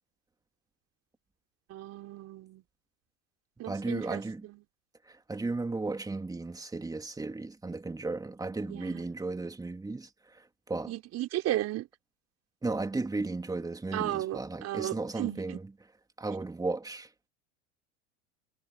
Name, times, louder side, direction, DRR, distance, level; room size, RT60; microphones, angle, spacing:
voice 1, 1.7-2.6 3.6-4.6 8.6-9.1 10.9-11.9 13.9-15.6, right 14 dB, 45° right, 5.3 m, -35 dB
voice 2, 3.6-4.4 5.0-10.9 12.6-15.6 16.2-17.1, right 3 dB, 10° right, 2.7 m, -35 dB
hypercardioid pair, 110°, 37 cm